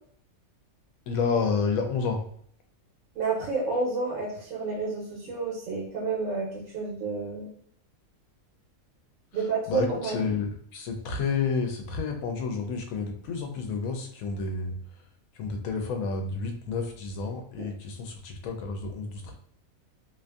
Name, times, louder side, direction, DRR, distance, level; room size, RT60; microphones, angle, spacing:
voice 1, 1.1-2.2 9.7-14.7 15.4-19.3, left 5 dB, 80° left, 4 dB, 1.0 m, -30 dB
voice 2, 3.2-7.5 9.3-10.2 17.6-17.7, right 4 dB, 75° right, -4 dB, 1.1 m, -30 dB
2.8 x 2.5 x 2.3 m, 0.62 s
omnidirectional pair, 1.5 m